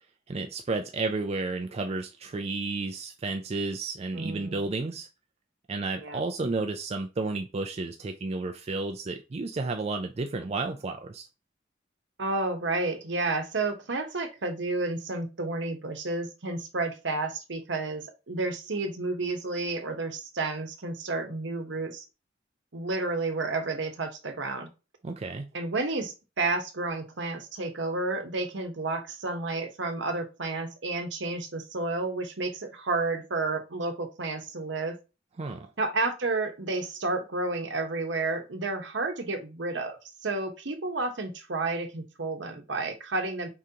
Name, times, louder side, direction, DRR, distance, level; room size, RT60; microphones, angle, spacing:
voice 1, 0.3-5.1 5.7-11.3 25.0-25.5 35.4-35.7, right 3 dB, 35° right, 0.4 m, -32 dB
voice 2, 4.1-4.6 6.0-6.2 12.2-22.0 22.7-24.7 25.5-35.0 35.8-43.5, right 3 dB, 70° right, 0.9 m, -31 dB
4.8 x 3.7 x 2.8 m
head